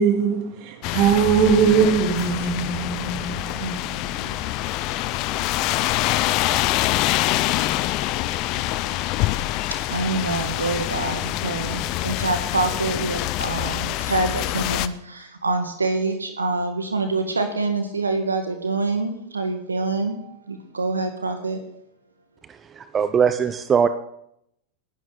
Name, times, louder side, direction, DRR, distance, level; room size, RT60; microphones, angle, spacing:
voice 1, 0.0-4.3, right 6 dB, 50° right, 3.1 m, -21 dB
sound 1, 0.8-14.9, left 16 dB, 45° left, 0.8 m, -25 dB
voice 2, 9.9-21.6, right 3 dB, 85° right, 1.7 m, -26 dB
voice 3, 22.8-23.9, right 7 dB, 25° right, 0.8 m, -20 dB
20.0 x 12.0 x 4.0 m
figure-of-eight pair, 90°, 0 cm